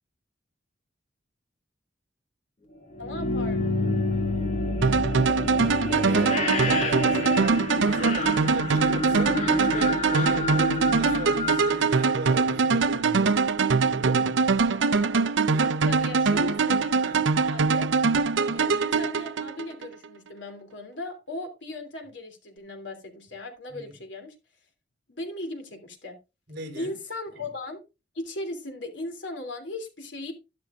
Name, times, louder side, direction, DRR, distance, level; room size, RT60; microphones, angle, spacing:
sound 1, 2.9-12.8, left 2 dB, 40° left, 2.6 m, -29 dB
voice 1, 3.0-3.6 6.6-7.4 14.7-15.1 15.6-17.0 17.4-17.9 18.5-24.3 25.1-26.2 26.7-27.8 28.1-30.3, left 2 dB, 75° left, 3.2 m, -38 dB
sound 2, 4.8-19.9, right 4 dB, 80° right, 0.6 m, -23 dB
voice 2, 5.9-13.5 13.9-14.5 15.5-15.8 17.0-17.3 23.7-24.0 26.5-27.0 27.4-27.5, right 2 dB, 55° right, 3.9 m, -38 dB
12.0 x 11.5 x 2.6 m
head